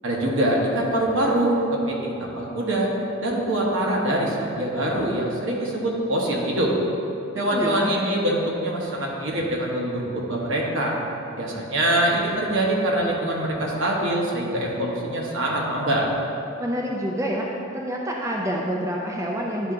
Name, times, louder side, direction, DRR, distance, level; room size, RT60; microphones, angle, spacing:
voice 1, 0.0-2.9 3.2-6.7 7.3-11.0 11.4-16.1, right 1 dB, 70° right, -2 dB, 1.1 m, -24 dB
voice 2, 7.5-7.9 16.6-17.5 17.7-19.7, equal, 15° right, -2 dB, 0.4 m, -27 dB
10.0 x 3.6 x 3.7 m, 2.9 s
head